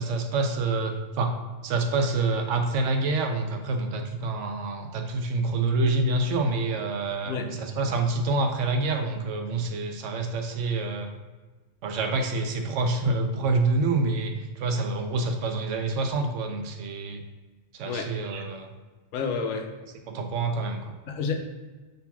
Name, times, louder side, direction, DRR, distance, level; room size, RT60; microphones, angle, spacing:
voice 1, 0.0-1.3 1.6-11.1 11.8-17.2 17.7-18.7 20.1-20.9, right 3 dB, 75° right, 4 dB, 0.9 m, -27 dB
voice 2, 19.1-19.7 21.1-21.3, left 5 dB, 85° left, 4 dB, 1.0 m, -29 dB
5.7 x 3.8 x 2.3 m, 1.3 s
omnidirectional pair, 1.3 m